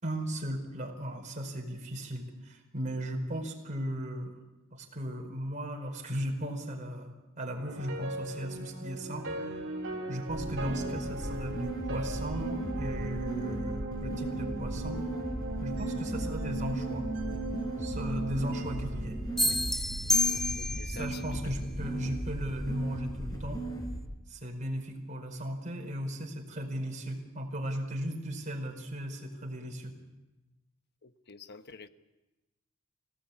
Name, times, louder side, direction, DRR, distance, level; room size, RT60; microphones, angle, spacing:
voice 1, 0.0-4.3 4.7-9.6 10.1-15.0 15.6-17.0 17.8-19.2 19.4-19.6 20.8-23.6 24.3-30.0, equal, 35° right, 2 dB, 4.8 m, -36 dB
sound 1, 7.6-19.8, right 2 dB, 55° right, 4.2 m, -38 dB
sound 2, 10.3-24.0, right 1 dB, 20° left, 5.3 m, -37 dB
sound 3, 19.4-21.0, left 2 dB, ahead, 0.8 m, -28 dB
voice 2, 20.6-21.1 31.0-31.9, left 4 dB, 50° left, 10 dB, 1.1 m, -47 dB
26.0 x 17.5 x 8.6 m, 1.1 s
head